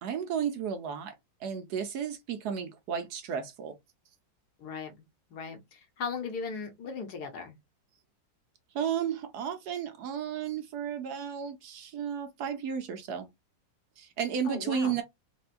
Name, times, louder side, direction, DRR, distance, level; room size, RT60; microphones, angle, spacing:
voice 1, 0.0-1.1 1.4-3.8 8.7-13.3 14.0-15.0, right 8 dB, 70° right, 1.1 m, -33 dB
voice 2, 4.6-5.0 5.3-7.6 14.4-15.0, left 5 dB, 65° left, 1.4 m, -37 dB
4.2 x 2.2 x 2.4 m
omnidirectional pair, 1.9 m